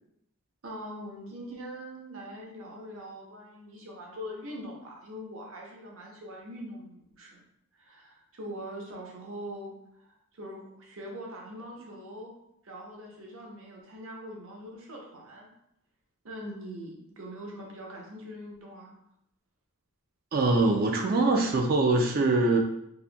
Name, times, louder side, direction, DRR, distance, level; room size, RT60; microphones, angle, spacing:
voice 1, 0.6-7.4 7.7-12.3 12.6-15.5 16.2-18.9, equal, 70° right, -2 dB, 0.8 m, -42 dB
voice 2, 20.3-22.6, right 2 dB, 45° right, 3 dB, 0.3 m, -23 dB
4.2 x 2.5 x 2.2 m, 0.78 s
head